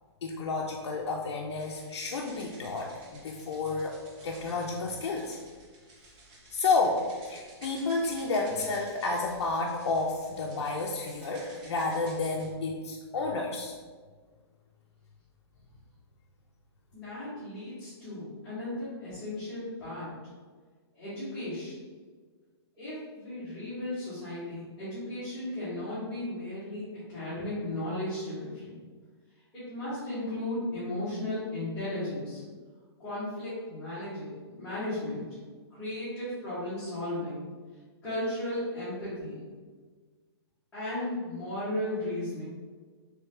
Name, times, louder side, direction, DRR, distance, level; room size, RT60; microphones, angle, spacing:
voice 1, 0.2-4.0 4.2-5.4 6.5-13.7, left 3 dB, 75° left, -1 dB, 0.5 m, -31 dB
sound 1, 1.5-12.5, right 2 dB, 15° right, 0.4 m, -53 dB
voice 2, 16.9-20.1 20.9-21.8 22.8-28.8 29.5-32.4 33.0-35.2 35.7-37.4 38.0-39.3 40.7-42.4, left 1 dB, 10° left, -16 dB, 1.1 m, -35 dB
3.4 x 3.2 x 3.2 m, 1.5 s
hypercardioid pair, 180°, 14 cm